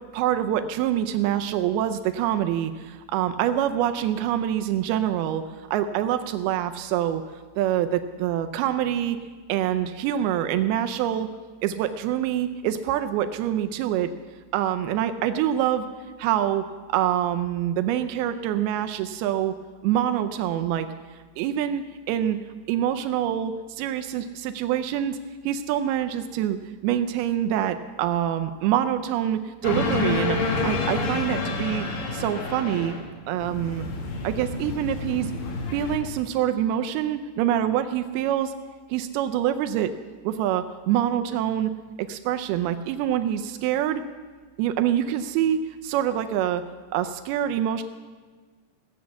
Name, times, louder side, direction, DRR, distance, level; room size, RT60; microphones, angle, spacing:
voice 1, 0.1-5.4 5.7-7.2 7.6-9.2 9.5-11.3 11.6-14.1 14.5-15.9 16.2-19.5 19.8-20.9 21.4-22.4 22.7-25.2 25.4-26.6 26.8-31.9 32.1-32.9 33.3-33.8 34.2-35.3 35.7-38.5 38.9-39.9 40.2-41.7 42.0-44.0 44.6-46.6 46.9-47.8, right 11 dB, 90° right, 8 dB, 2.6 m, -25 dB
sound 1, 29.6-33.0 33.3-36.0, left 3 dB, 70° left, 3.3 m, -28 dB
17.0 x 7.0 x 8.6 m, 1.5 s
omnidirectional pair, 4.4 m